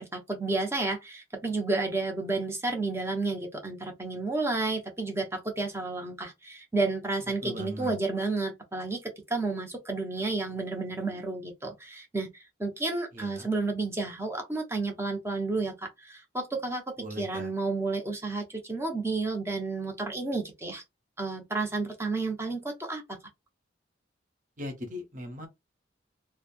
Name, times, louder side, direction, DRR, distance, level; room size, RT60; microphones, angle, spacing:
voice 1, 0.0-20.8 21.2-23.2, right 3 dB, 15° right, 0.6 m, -31 dB
voice 2, 7.4-7.9 13.1-13.5 17.0-17.5 24.6-25.5, equal, 45° right, 0.9 m, -39 dB
3.0 x 2.1 x 2.5 m
head